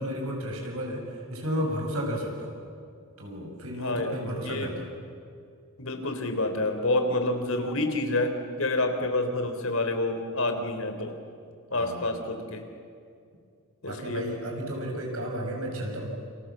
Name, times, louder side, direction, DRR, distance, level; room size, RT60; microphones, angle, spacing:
voice 1, 0.0-2.5 3.2-4.9 11.7-12.1 13.8-16.1, equal, 90° right, 0 dB, 7.0 m, -33 dB
voice 2, 3.7-4.7 5.8-11.1 11.7-12.6 13.8-14.3, left 2 dB, 75° left, 6 dB, 3.5 m, -28 dB
29.0 x 27.0 x 7.5 m, 2.4 s
head